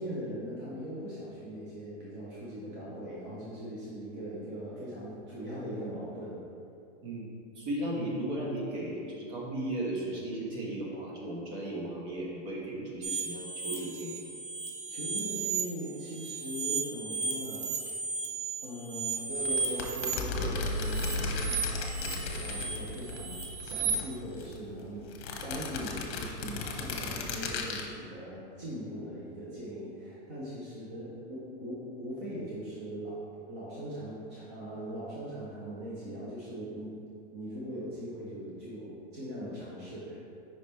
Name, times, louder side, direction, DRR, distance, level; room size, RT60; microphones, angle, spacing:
voice 1, 0.0-6.4 12.8-12.9 14.9-17.7 18.6-25.1 25.4-33.2 33.5-36.9 37.3-40.2, equal, 15° right, -8 dB, 0.3 m, -40 dB
voice 2, 7.0-14.3, right 1 dB, 40° right, -4 dB, 1.3 m, -36 dB
sound 1, 13.0-15.6 15.9-20.1 20.7-23.9, right 5 dB, 80° right, 1.2 m, -35 dB
sound 2, 19.4-23.2 23.4-24.6 25.1-27.9, left 5 dB, 60° left, 0.9 m, -38 dB
sound 3, 20.2-26.8, left 1 dB, 35° left, 1.2 m, -37 dB
5.1 x 5.1 x 4.2 m, 2.6 s
supercardioid pair, 170°, 35 cm